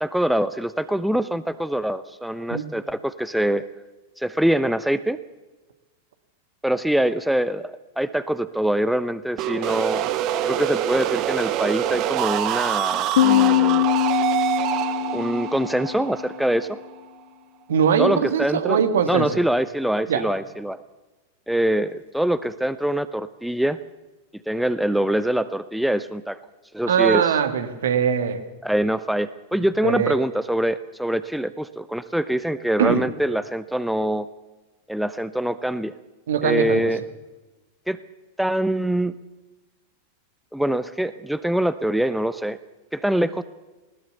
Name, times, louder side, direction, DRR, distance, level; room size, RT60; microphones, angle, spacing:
voice 1, 0.0-3.7 4.2-5.2 6.6-10.1 10.4-13.9 15.1-16.8 18.0-18.8 19.1-20.8 21.5-23.8 24.5-26.4 26.7-27.3 28.6-34.3 34.9-35.9 36.4-37.0 37.9-38.0 38.4-39.1 40.5-42.6 42.9-43.4, right 1 dB, ahead, 14 dB, 0.8 m, -24 dB
sound 1, 9.4-17.1, right 11 dB, 40° right, 1.3 m, -25 dB
Piano, 13.2-16.6, left 15 dB, 55° left, 0.9 m, -22 dB
voice 2, 17.7-19.3 20.1-20.2 26.9-28.4 29.8-30.1 32.8-33.0 36.3-36.8, right 8 dB, 60° right, 9 dB, 2.1 m, -21 dB
20.5 x 20.0 x 6.8 m, 1.1 s
figure-of-eight pair, 90°, 0 cm